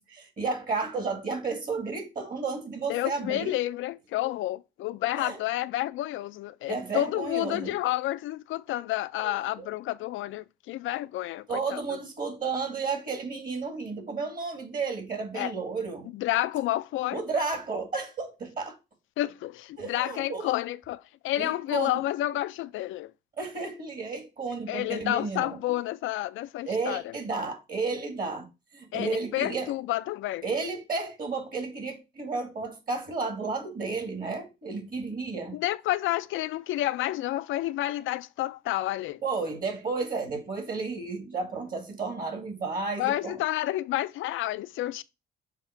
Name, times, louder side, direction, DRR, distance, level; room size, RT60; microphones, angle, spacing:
voice 1, 0.0-3.6 4.2-4.3 5.2-5.4 6.7-7.7 9.2-9.7 11.5-16.1 17.1-18.8 19.8-20.5 21.4-22.0 23.4-25.6 26.6-28.5 28.7-29.7 30.4-35.6 39.2-43.4, right 4 dB, 45° right, 2.1 m, -32 dB
voice 2, 2.9-12.0 15.3-15.5 16.1-17.2 19.2-23.1 24.7-27.1 28.9-30.4 35.5-39.2 43.0-45.0, left 15 dB, 80° left, 0.4 m, -30 dB
7.2 x 2.5 x 5.7 m
cardioid pair, 90°, 20 cm